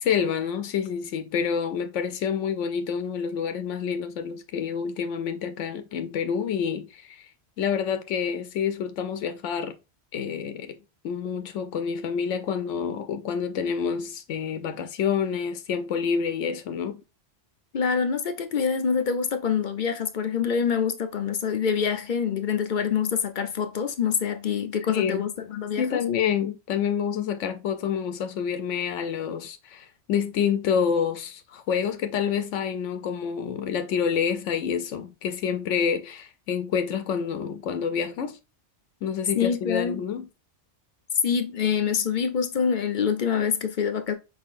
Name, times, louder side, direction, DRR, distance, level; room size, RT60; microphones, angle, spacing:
voice 1, 0.0-7.3 7.6-9.8 10.1-10.8 11.0-17.0 24.9-25.3 25.8-38.4 39.0-40.3, left 7 dB, 90° left, 1.0 m, -28 dB
voice 2, 17.7-26.0 39.4-40.0 41.2-44.1, left 7 dB, 50° left, 0.7 m, -26 dB
5.3 x 3.7 x 2.4 m
omnidirectional pair, 1.2 m